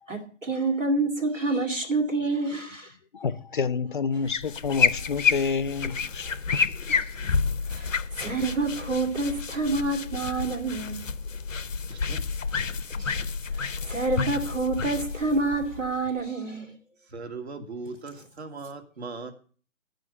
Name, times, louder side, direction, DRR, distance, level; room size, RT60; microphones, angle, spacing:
voice 1, 0.1-2.9 7.2-7.3 7.7-11.1 13.0-13.1 13.6-16.7, right 3 dB, 80° right, 2.5 m, -28 dB
voice 2, 3.1-6.6, left 5 dB, 45° left, 0.5 m, -29 dB
sound 1, 4.2-16.2, left 5 dB, 85° left, 0.7 m, -29 dB
voice 3, 11.9-12.2 12.6-12.7 17.1-19.3, right 3 dB, 60° right, 1.9 m, -38 dB
11.5 x 5.2 x 7.8 m
figure-of-eight pair, 135°, 38 cm